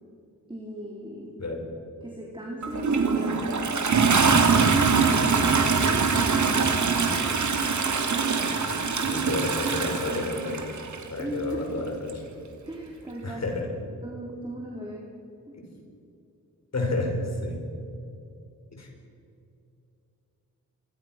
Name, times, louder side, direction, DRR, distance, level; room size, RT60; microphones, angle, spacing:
voice 1, 0.5-1.4 2.0-7.4 11.2-11.8 12.7-13.4 14.0-15.1 15.5-15.6, right 1 dB, 15° right, -2 dB, 4.1 m, -37 dB
Toilet flush, 2.6-11.0 12.1-12.2, right 5 dB, 60° right, 2.9 m, -23 dB
voice 2, 9.0-10.8 11.1-12.2 13.2-13.7 15.6-15.7 16.7-17.6 18.7-18.9, left 2 dB, 55° left, 2 dB, 5.8 m, -30 dB
27.5 x 22.5 x 6.1 m, 2.6 s
wide cardioid pair, 110°, 32 cm